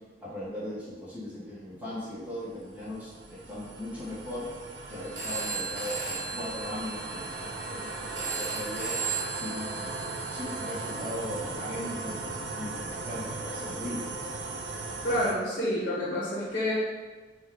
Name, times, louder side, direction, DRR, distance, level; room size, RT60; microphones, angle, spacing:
voice 1, 0.2-4.5 4.9-10.0 10.3-14.1, left 1 dB, 10° right, -10 dB, 1.0 m, -38 dB
sound 1, 1.8-15.3, right 3 dB, 80° right, 0.4 m, -38 dB
Telephone, 5.0-10.9, right 4 dB, 45° right, 1.0 m, -36 dB
voice 2, 15.0-16.7, left 1 dB, 50° left, -7 dB, 1.1 m, -28 dB
5.0 x 2.3 x 3.6 m, 1.3 s
head